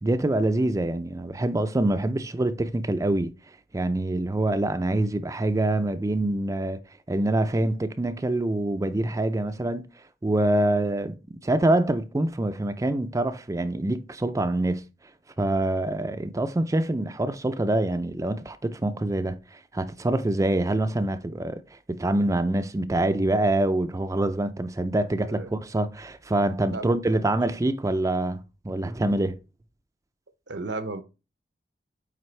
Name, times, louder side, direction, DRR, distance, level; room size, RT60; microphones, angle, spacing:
voice 1, 0.0-3.3 3.7-6.8 7.1-9.8 10.2-11.1 11.4-14.8 15.4-29.4, right 1 dB, 20° right, 0.4 m, -25 dB
voice 2, 26.7-27.2 30.5-31.0, right 3 dB, 75° right, 0.7 m, -34 dB
8.9 x 3.5 x 3.2 m
head